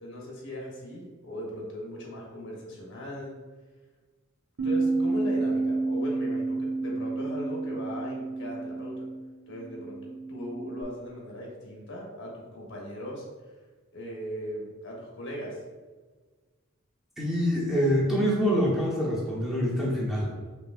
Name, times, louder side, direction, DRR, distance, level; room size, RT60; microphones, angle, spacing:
voice 1, 0.0-3.4 4.6-9.1 9.5-13.3 13.9-15.6, equal, 60° left, -2 dB, 1.0 m, -38 dB
Bass guitar, 4.6-10.8, right 3 dB, 80° right, 0.9 m, -30 dB
voice 2, 17.2-20.3, equal, ahead, -6 dB, 0.8 m, -25 dB
5.3 x 3.0 x 2.4 m, 1.4 s
head